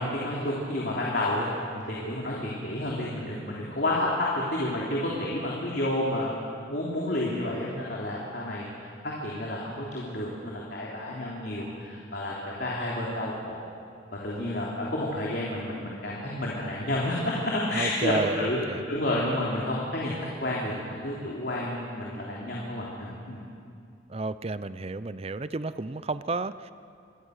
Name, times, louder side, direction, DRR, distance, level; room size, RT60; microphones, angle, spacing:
voice 1, 0.0-6.3 6.7-13.6 14.2-18.6 18.9-20.7 21.0-23.4, left 1 dB, 55° left, -4 dB, 3.4 m, -30 dB
voice 2, 17.7-18.8 24.1-26.7, right 3 dB, 30° right, 14 dB, 0.5 m, -31 dB
27.0 x 21.5 x 6.6 m, 2.4 s
head